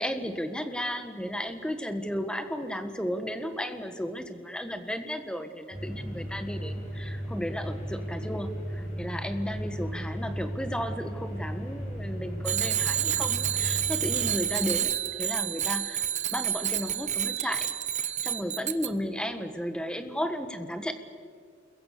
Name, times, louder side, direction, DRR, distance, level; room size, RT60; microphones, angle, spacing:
voice 1, 0.0-14.9 15.2-17.7 18.0-20.9, equal, 5° left, 8 dB, 1.7 m, -34 dB
sound 1, 5.7-14.3, equal, 35° left, 7.7 m, -35 dB
Bicycle bell, 12.4-18.9, right 10 dB, 35° right, 1.0 m, -29 dB
29.0 x 22.5 x 6.9 m, 2.1 s
head